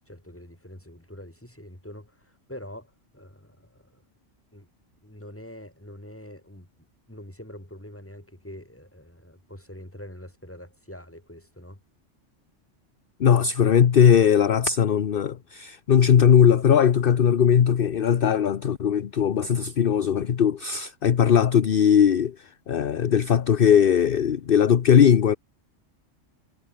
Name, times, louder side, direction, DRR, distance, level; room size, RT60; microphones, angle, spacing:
voice 1, 0.0-4.0 4.5-4.7 5.0-6.7 7.1-11.8, left 1 dB, 10° left, 4.0 m, -44 dB
voice 2, 13.2-25.3, left 8 dB, 50° left, 1.0 m, -19 dB
omnidirectional pair, 1.3 m